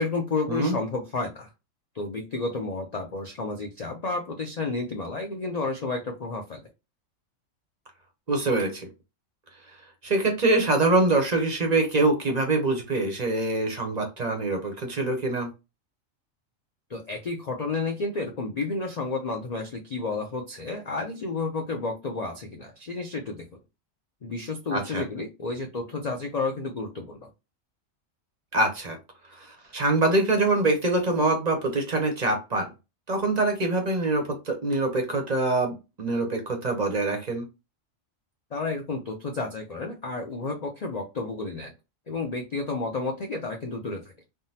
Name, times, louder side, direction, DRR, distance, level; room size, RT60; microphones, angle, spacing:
voice 1, 0.0-1.5 1.9-6.6 16.9-23.5 24.2-27.3 38.5-41.7 42.1-44.0, left 3 dB, 75° left, 2 dB, 0.3 m, -31 dB
voice 2, 8.3-8.9 10.0-15.5 24.7-25.0 28.5-29.0 29.3-32.7 33.1-37.4, right 2 dB, 45° right, 3 dB, 0.6 m, -24 dB
3.5 x 2.0 x 2.7 m, 0.27 s
omnidirectional pair, 1.4 m